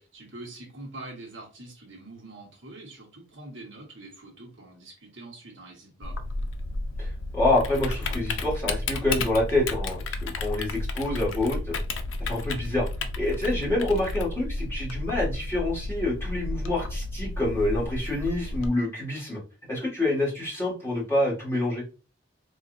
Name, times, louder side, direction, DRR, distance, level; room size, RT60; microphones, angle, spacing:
voice 1, 0.0-6.2, right 2 dB, 70° right, 0 dB, 1.1 m, -44 dB
Typing, 6.0-18.7, left 2 dB, 80° left, 0.5 m, -32 dB
voice 2, 7.0-11.8 12.2-12.9 13.2-19.4 19.7-21.8, left 2 dB, 15° left, -7 dB, 1.7 m, -27 dB
3.9 x 2.4 x 2.5 m, 0.34 s
head